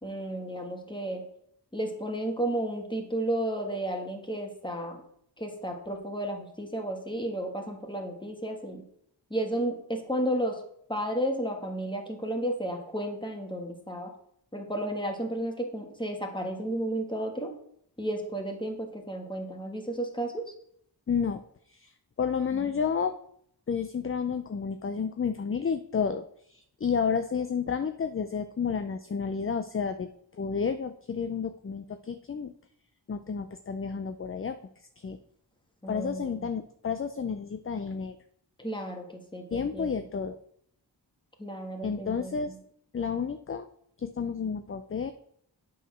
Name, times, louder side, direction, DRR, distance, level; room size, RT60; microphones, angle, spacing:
voice 1, 0.0-1.3 1.7-5.0 5.4-8.8 9.3-10.6 10.9-14.1 14.5-17.5 18.0-20.5 22.5-22.7 35.8-36.5 38.6-40.0 41.4-42.6, right 1 dB, 10° left, 2 dB, 1.6 m, -33 dB
voice 2, 21.1-21.4 21.7-21.9 22.2-23.1 23.7-32.5 33.1-34.6 35.0-35.2 35.9-38.2 39.5-40.4 41.8-42.5 42.9-43.7 44.0-45.1, left 6 dB, 30° left, 10 dB, 0.4 m, -31 dB
8.2 x 4.0 x 6.2 m, 0.69 s
wide cardioid pair, 50°, 44 cm